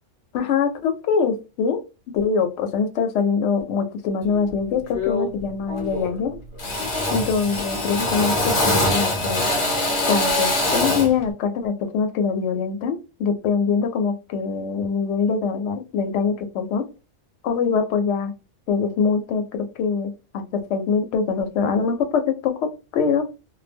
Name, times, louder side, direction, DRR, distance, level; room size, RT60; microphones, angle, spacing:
voice 1, 0.3-1.8 2.1-6.4 7.1-9.5 10.1-16.8 17.4-18.3 18.7-22.7 22.9-23.3, left 5 dB, 70° left, 6 dB, 0.8 m, -23 dB
Drill, 4.3-4.5 4.9-5.4 5.7-6.2 6.6-11.2, left 2 dB, 35° left, 0.5 m, -23 dB
2.1 x 2.0 x 3.4 m, 0.29 s
omnidirectional pair, 1.3 m